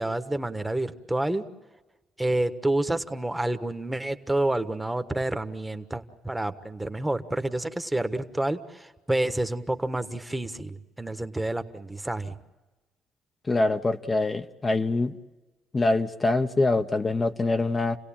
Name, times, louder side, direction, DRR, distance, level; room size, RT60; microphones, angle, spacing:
voice 1, 0.0-1.5 2.2-12.4, right 1 dB, 10° right, 9 dB, 1.4 m, -29 dB
voice 2, 13.5-15.1 15.7-18.0, left 2 dB, 25° left, 6 dB, 1.0 m, -24 dB
29.5 x 17.0 x 8.8 m, 1.2 s
supercardioid pair, 75°, 0 cm